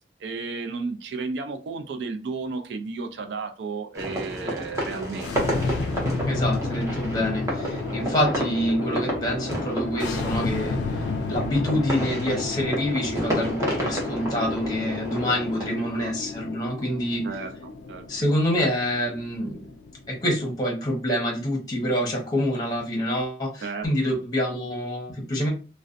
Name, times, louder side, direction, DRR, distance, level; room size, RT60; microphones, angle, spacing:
voice 1, 0.2-5.5 15.8-16.1 17.2-18.0 23.6-23.9, right 4 dB, 85° right, 0.4 m, -33 dB
sound 1, 3.9-15.7, equal, 20° right, 0.7 m, -31 dB
sound 2, 5.1-20.4, left 3 dB, 90° left, 0.3 m, -32 dB
voice 2, 6.3-17.3 18.1-19.6 20.1-25.5, equal, 20° left, 0.8 m, -26 dB
2.5 x 2.1 x 2.4 m
head